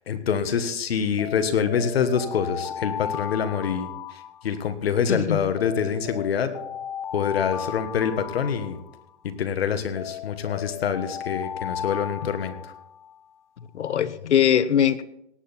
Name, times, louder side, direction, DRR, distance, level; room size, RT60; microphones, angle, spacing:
voice 1, 0.0-3.9 4.4-6.5 7.1-8.8 9.2-12.5, left 7 dB, 60° left, 10 dB, 1.5 m, -25 dB
Alarm, 1.2-4.9 5.6-9.3 10.0-13.2, left 9 dB, 35° left, 0.6 m, -35 dB
voice 2, 13.7-15.0, left 9 dB, 80° left, 15 dB, 1.0 m, -21 dB
18.0 x 8.7 x 4.3 m, 0.80 s
hypercardioid pair, 170°, 34 cm